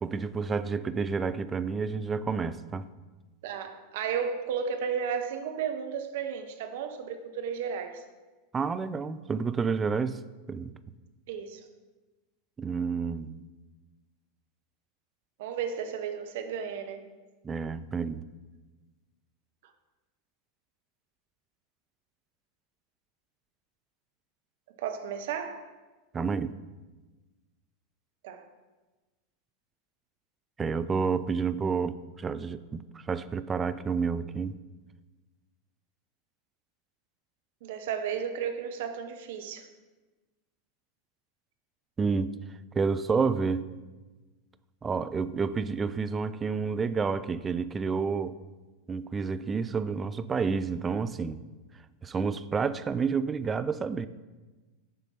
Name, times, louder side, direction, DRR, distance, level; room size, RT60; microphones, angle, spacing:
voice 1, 0.0-2.9 8.5-10.2 10.5-10.7 12.6-13.4 17.4-18.3 26.1-26.5 30.6-34.6 42.0-42.4 42.7-43.7 44.8-48.4 48.9-51.4 52.0-54.1, right 5 dB, 20° right, 0.3 m, -29 dB
voice 2, 3.4-8.0 11.3-11.6 15.4-17.1 24.8-25.7 28.2-28.4 37.6-39.7, right 7 dB, 60° right, 0.7 m, -33 dB
7.3 x 5.2 x 4.3 m
figure-of-eight pair, 85°, 0 cm